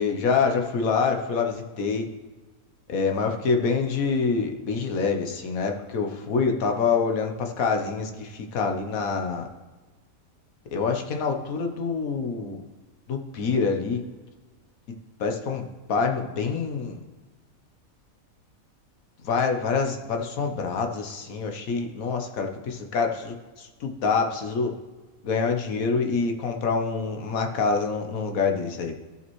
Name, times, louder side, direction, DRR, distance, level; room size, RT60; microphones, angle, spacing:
voice 1, 0.0-2.1 2.9-9.5 10.7-12.6 13.1-14.0 15.2-17.0 19.3-24.7 25.2-29.0, left 5 dB, 80° left, 4 dB, 1.3 m, -26 dB
14.5 x 5.4 x 3.1 m, 1.3 s
omnidirectional pair, 1.5 m